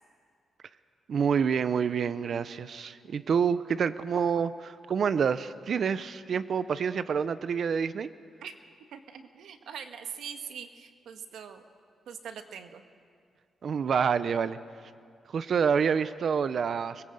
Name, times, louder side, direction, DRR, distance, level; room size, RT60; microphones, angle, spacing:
voice 1, 1.1-8.1 13.6-14.6 15.3-17.0, right 6 dB, 45° right, 13 dB, 0.6 m, -27 dB
voice 2, 8.9-11.6 12.1-12.8, right 7 dB, 80° right, 7 dB, 1.6 m, -42 dB
25.0 x 20.5 x 7.8 m, 2.2 s
wide cardioid pair, 170°, 0 cm